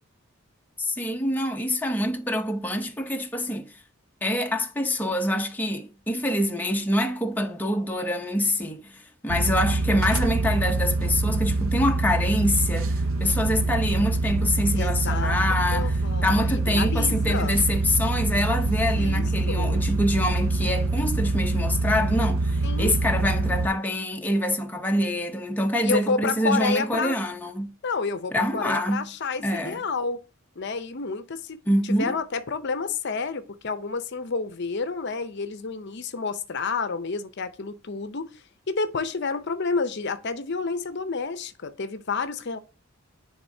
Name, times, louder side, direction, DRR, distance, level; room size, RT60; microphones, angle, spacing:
voice 1, 0.8-3.8 4.2-16.0 16.2-27.7 28.3-29.1 29.4-29.8 31.7-32.2, left 1 dB, 10° left, 0.6 m, -25 dB
sound 1, 9.3-23.7, right 2 dB, 70° right, 0.6 m, -25 dB
voice 2, 14.7-17.6 18.9-19.8 22.6-23.0 25.8-27.2 27.8-30.2 30.6-31.6 31.8-42.6, left 4 dB, 55° left, 0.6 m, -30 dB
10.5 x 3.7 x 2.7 m
head